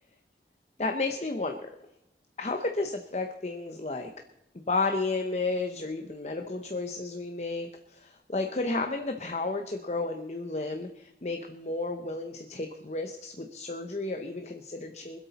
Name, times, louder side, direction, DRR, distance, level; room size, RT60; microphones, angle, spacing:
voice 1, 0.8-1.7 2.4-4.1 4.7-15.2, left 3 dB, 40° left, 5 dB, 0.8 m, -32 dB
25.0 x 8.3 x 4.1 m, 0.88 s
head